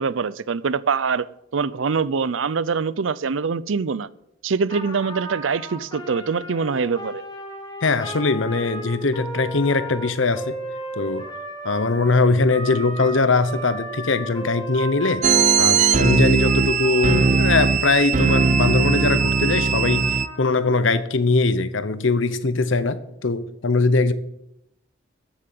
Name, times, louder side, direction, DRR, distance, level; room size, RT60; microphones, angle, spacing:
voice 1, 0.0-4.1 4.4-7.2, right 5 dB, 80° right, 0.5 m, -24 dB
Trumpet, 4.7-17.8 18.2-20.8, equal, 20° left, 2.5 m, -35 dB
voice 2, 7.8-10.6 11.0-11.3 11.6-15.3 15.6-24.1, left 3 dB, 80° left, 0.9 m, -21 dB
sound 1, 15.2-20.3, right 5 dB, 40° right, 0.6 m, -19 dB
13.5 x 7.3 x 7.8 m
head